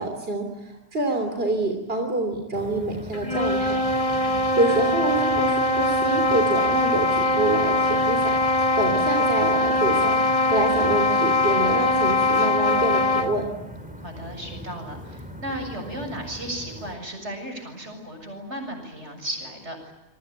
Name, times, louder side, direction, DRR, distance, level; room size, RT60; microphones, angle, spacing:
voice 1, 0.0-3.8 4.6-10.2 10.5-13.5, right 2 dB, 60° right, 4 dB, 3.4 m, -26 dB
sound 1, 2.5-17.0, equal, 5° right, 4.4 m, -40 dB
sound 2, 3.1-13.4, left 1 dB, 30° left, 2.1 m, -22 dB
voice 2, 4.2-4.9 14.0-19.9, right 1 dB, 90° right, 5 dB, 7.6 m, -35 dB
28.0 x 23.5 x 8.7 m, 1.0 s
omnidirectional pair, 1.1 m